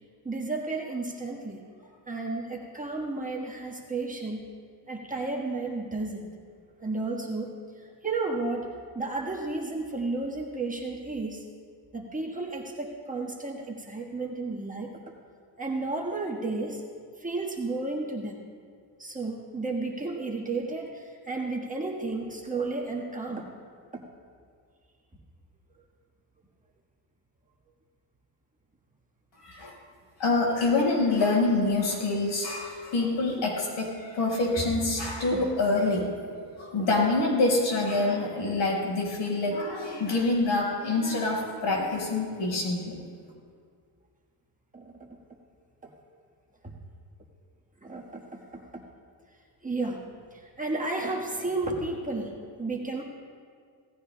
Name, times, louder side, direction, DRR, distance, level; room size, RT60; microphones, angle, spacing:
voice 1, 0.2-1.6 2.1-4.4 4.9-6.3 6.8-11.4 11.9-15.0 15.6-16.8 17.2-18.4 19.0-23.5 23.9-24.0 33.0-33.1 35.3-35.4 44.7-44.8 46.6-46.7 47.8-48.8 49.6-50.0 50.3-53.0, right 3 dB, 20° right, -2 dB, 1.4 m, -33 dB
voice 2, 29.4-29.7 30.2-36.1 36.6-43.0, left 2 dB, 70° left, -2 dB, 4.9 m, -26 dB
26.0 x 17.0 x 2.2 m, 2.2 s
cardioid pair, 155°, 44 cm